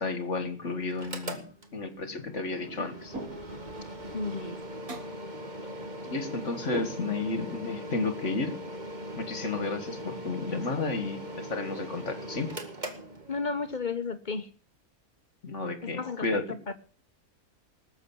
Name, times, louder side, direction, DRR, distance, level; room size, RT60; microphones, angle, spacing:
voice 1, 0.0-3.1 6.1-8.6 9.2-12.5 15.4-16.4, left 3 dB, 55° left, 10 dB, 2.0 m, -32 dB
Mechanical fan, 0.9-13.7, equal, 30° right, 2.0 m, -40 dB
sound 1, 3.1-3.7 4.9-5.3 6.7-7.4, right 2 dB, 70° right, 2.7 m, -39 dB
voice 2, 4.1-4.6 13.3-14.5 15.8-16.7, left 4 dB, 35° left, 10 dB, 1.4 m, -33 dB
19.5 x 7.6 x 7.2 m, 0.39 s
omnidirectional pair, 1.5 m